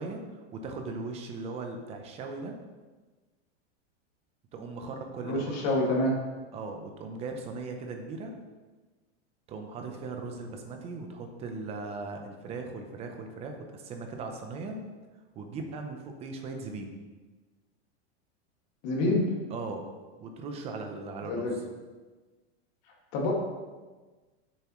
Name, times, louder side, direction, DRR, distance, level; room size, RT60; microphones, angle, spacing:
voice 1, 0.0-2.5 4.5-5.6 6.5-8.3 9.5-14.8 15.4-16.9 19.5-19.9 20.2-21.6, right 3 dB, 20° right, 4 dB, 0.7 m, -38 dB
voice 2, 5.2-6.2 18.8-19.3 21.3-21.5 23.1-23.3, left 1 dB, 40° left, -2 dB, 2.1 m, -27 dB
9.4 x 7.1 x 3.1 m, 1.3 s
supercardioid pair, 170°, 32 cm